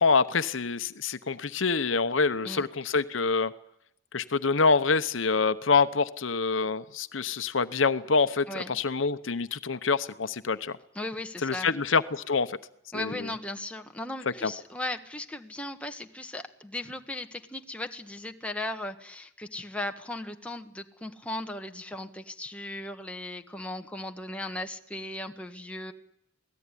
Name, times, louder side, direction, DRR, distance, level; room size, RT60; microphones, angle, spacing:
voice 1, 0.0-3.5 4.1-10.8 11.4-12.6 12.9-13.3 14.4-14.5, left 4 dB, 80° left, 13 dB, 0.9 m, -26 dB
voice 2, 10.9-11.8 12.9-25.9, left 1 dB, 5° left, 4 dB, 1.5 m, -37 dB
27.5 x 18.0 x 9.9 m, 0.77 s
head